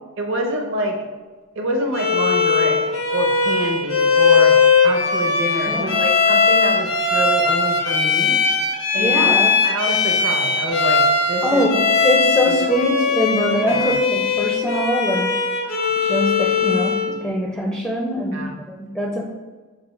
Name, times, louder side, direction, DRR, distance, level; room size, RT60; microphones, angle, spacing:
voice 1, 0.2-1.0 1.6-8.4 8.9-9.4 9.6-11.7 12.5-12.7 13.6-14.0 18.3-18.5, equal, 55° right, 2 dB, 0.6 m, -26 dB
Bowed string instrument, 1.9-17.2, left 4 dB, 60° left, 0.6 m, -19 dB
voice 2, 5.7-6.0 9.0-9.6 11.4-15.3 16.0-19.2, equal, 5° left, -2 dB, 0.4 m, -22 dB
6.6 x 2.5 x 3.1 m, 1.3 s
head